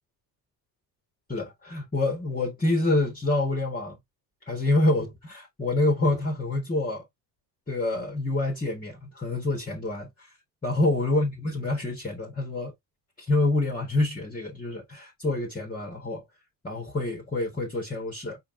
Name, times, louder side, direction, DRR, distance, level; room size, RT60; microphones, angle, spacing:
voice 1, 1.3-4.0 4.5-7.0 7.7-10.3 10.6-12.7 13.2-16.2 16.6-18.4, left 2 dB, 15° left, 1.6 m, -27 dB
5.1 x 3.4 x 2.6 m
hypercardioid pair, 65°, 49 cm